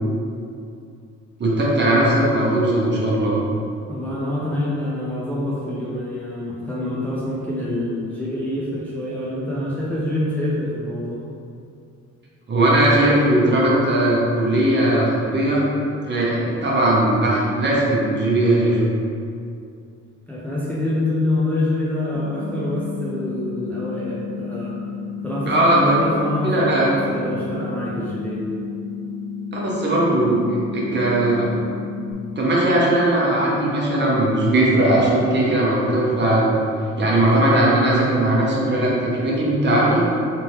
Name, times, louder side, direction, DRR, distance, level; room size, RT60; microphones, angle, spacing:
voice 1, 1.4-3.4 12.5-15.7 16.0-18.8 25.5-26.0 26.4-26.9 29.5-30.4 30.7-31.5 32.4-36.5 37.0-40.1, right 1 dB, 35° right, -5 dB, 1.0 m, -18 dB
voice 2, 3.9-11.2 20.3-24.8 25.2-28.5, left 1 dB, 5° left, -7 dB, 0.6 m, -26 dB
sound 1, 22.1-32.1, left 5 dB, 60° left, 0.7 m, -32 dB
3.6 x 3.0 x 2.9 m, 2.4 s
cardioid pair, 90°, 30 cm